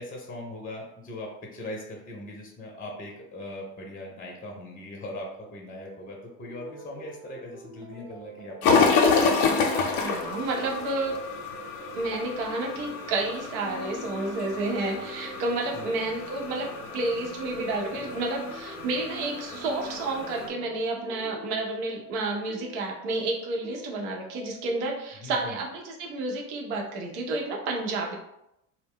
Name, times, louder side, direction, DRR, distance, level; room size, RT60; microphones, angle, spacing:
voice 1, 0.0-9.1 15.7-16.1 25.2-25.6, left 1 dB, 20° left, 0 dB, 0.7 m, -40 dB
sound 1, 6.5-24.8, right 2 dB, 30° right, 0.7 m, -46 dB
sound 2, 8.6-20.5, left 4 dB, 75° left, 0.6 m, -29 dB
voice 2, 10.0-11.2 12.0-28.1, right 2 dB, 65° right, 0 dB, 0.8 m, -30 dB
2.2 x 2.0 x 3.6 m, 0.85 s
hypercardioid pair, 70°, 43 cm